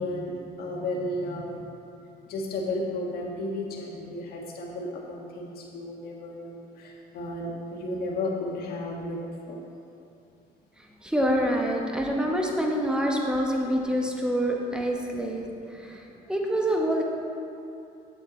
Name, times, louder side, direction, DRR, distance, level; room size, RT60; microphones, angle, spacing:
voice 1, 0.0-1.6 2.3-9.2 9.5-9.6, left 1 dB, 65° left, -1 dB, 1.6 m, -33 dB
voice 2, 10.8-17.0, equal, 5° right, 0 dB, 1.2 m, -27 dB
8.8 x 8.0 x 4.0 m, 2.6 s
cardioid pair, 110°, 17 cm